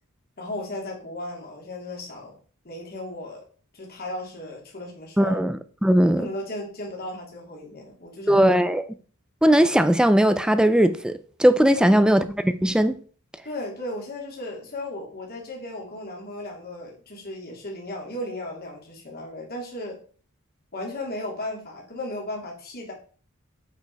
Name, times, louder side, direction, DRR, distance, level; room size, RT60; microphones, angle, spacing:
voice 1, 0.4-2.4 2.6-3.4 3.7-5.4 6.1-8.4 11.7-12.1 13.4-20.0 20.7-22.9, left 1 dB, 45° left, 3.0 m, -35 dB
voice 2, 5.2-6.3 8.3-8.9 9.4-12.9, equal, 5° right, 0.4 m, -19 dB
8.2 x 5.3 x 4.6 m
head